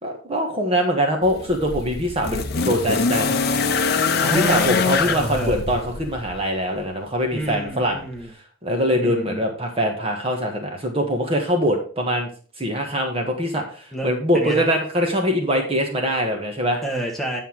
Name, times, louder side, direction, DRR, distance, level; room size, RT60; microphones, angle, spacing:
voice 1, 0.0-3.4 4.3-8.0 8.6-12.3 12.6-16.8, equal, 25° right, 2 dB, 1.4 m, -23 dB
sound 1, 1.2-6.4 7.5-7.6, left 4 dB, 50° left, 0.7 m, -23 dB
voice 2, 4.2-5.6 7.3-8.3 8.9-9.5 13.9-14.7 16.8-17.4, right 1 dB, ahead, -1 dB, 1.5 m, -29 dB
9.4 x 5.7 x 4.6 m, 0.41 s
head